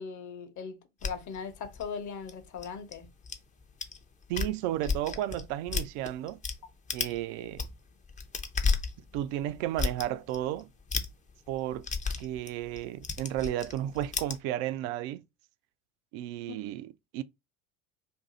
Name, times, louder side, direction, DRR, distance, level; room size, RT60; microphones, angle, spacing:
voice 1, 0.0-3.1 6.6-6.7, left 6 dB, 40° left, 0.9 m, -39 dB
sound 1, 1.0-3.4 3.8-4.0 4.2-6.6 6.9-7.2 7.5-14.4, left 5 dB, 15° left, 0.6 m, -33 dB
voice 2, 4.3-6.4 6.9-7.7 9.1-10.7 11.5-11.9 12.2-15.2 16.1-17.2, right 13 dB, 55° right, 0.5 m, -33 dB
2.7 x 2.6 x 3.8 m
hypercardioid pair, 70°, 45 cm